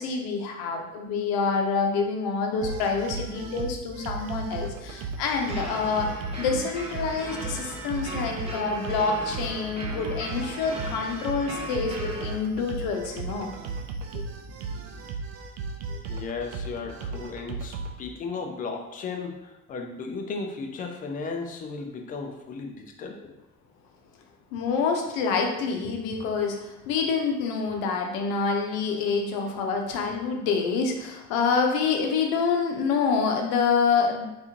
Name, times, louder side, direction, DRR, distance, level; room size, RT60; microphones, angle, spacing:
voice 1, 0.0-6.1 6.4-13.5 14.1-14.2 15.9-16.0 24.5-34.3, left 5 dB, 55° left, 3 dB, 0.7 m, -27 dB
sound 1, 2.6-17.9, right 4 dB, 55° right, 0.5 m, -36 dB
sound 2, 5.5-12.3, right 1 dB, 15° right, 0.8 m, -38 dB
voice 2, 16.1-23.3, left 4 dB, 20° left, 3 dB, 0.3 m, -35 dB
3.4 x 2.5 x 2.8 m, 0.97 s
hypercardioid pair, 65°, 45 cm